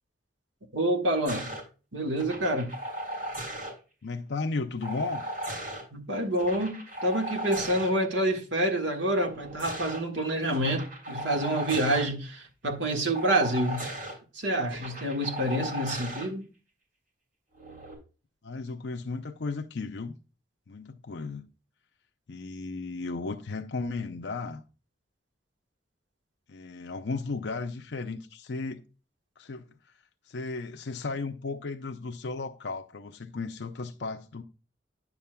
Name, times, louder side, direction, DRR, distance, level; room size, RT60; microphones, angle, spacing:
voice 1, 0.7-1.5 1.9-2.7 5.9-13.8 14.3-16.4, right 1 dB, 85° right, 1.6 m, -27 dB
sound 1, 1.2-1.6 2.2-3.7 4.8-5.8 6.3-7.9 9.2-10.0 10.5-12.1 13.1-14.1 14.7-16.3 17.5-17.9, right 1 dB, 50° right, 3.4 m, -37 dB
voice 2, 4.0-5.2 18.4-20.2 20.7-21.5 22.3-24.6 26.5-28.8 29.4-29.9 30.3-34.4, left 3 dB, 70° left, 0.6 m, -35 dB
10.5 x 7.1 x 2.2 m
head